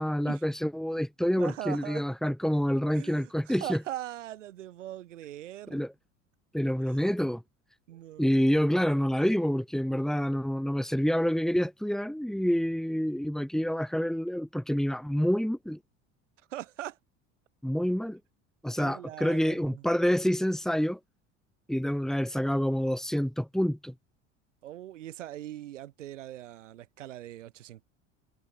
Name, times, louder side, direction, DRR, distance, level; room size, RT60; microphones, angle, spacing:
voice 1, 0.0-3.8 5.7-5.9 6.5-7.4 8.2-15.8 17.6-18.2 18.6-21.0 21.7-23.9, equal, ahead, 6.0 m, -27 dB
voice 2, 1.4-2.0 2.9-5.8 7.9-8.4 16.5-17.0 18.8-19.8 24.6-27.8, right 13 dB, 90° right, 7.1 m, -41 dB
hypercardioid pair, 80°, 36 cm